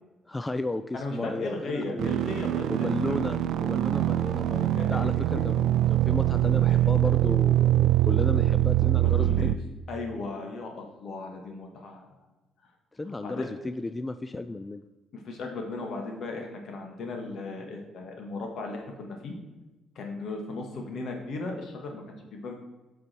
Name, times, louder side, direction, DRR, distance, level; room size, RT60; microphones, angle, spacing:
voice 1, 0.3-2.2 2.7-5.5 5.9-9.5 12.9-14.8, left 2 dB, 20° left, 11 dB, 0.4 m, -34 dB
voice 2, 0.9-3.2 4.8-5.0 5.3-5.4 6.7-6.8 9.0-9.5 9.9-12.1 13.1-13.5 15.1-19.4 20.0-22.0 22.3-22.5, left 3 dB, 65° left, 2 dB, 1.9 m, -36 dB
sound 1, 2.0-9.6, right 13 dB, 75° right, 0.3 m, -23 dB
8.1 x 5.6 x 4.5 m, 1.1 s
cardioid pair, 90°, 0 cm